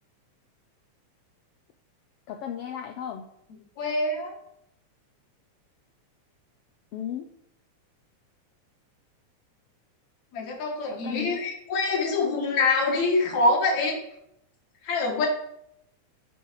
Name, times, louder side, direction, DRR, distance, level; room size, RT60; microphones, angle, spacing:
voice 1, 2.3-3.3 6.9-7.3 10.9-11.4 15.1-15.3, left 9 dB, 90° left, 5 dB, 1.3 m, -35 dB
voice 2, 3.8-4.3 10.3-14.0 14.8-15.3, left 3 dB, 65° left, 0 dB, 3.2 m, -25 dB
9.7 x 6.3 x 4.7 m, 0.76 s
omnidirectional pair, 3.4 m